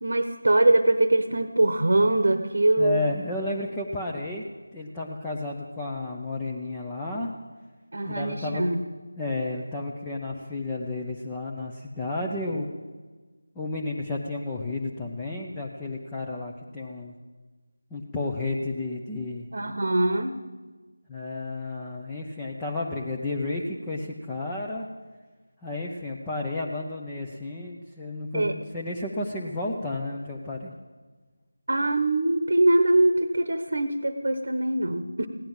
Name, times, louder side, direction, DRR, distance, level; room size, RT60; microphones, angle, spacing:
voice 1, 0.0-3.0 7.9-8.8 19.5-20.3 28.3-28.6 31.7-35.3, right 2 dB, 55° right, 10 dB, 1.0 m, -22 dB
voice 2, 2.8-4.4 4.7-7.3 8.1-8.6 9.2-12.7 13.5-17.1 17.9-19.5 21.1-24.9 25.6-30.7, left 2 dB, 10° left, -4 dB, 0.8 m, -32 dB
16.5 x 10.5 x 7.2 m, 1.3 s
figure-of-eight pair, 165°, 0 cm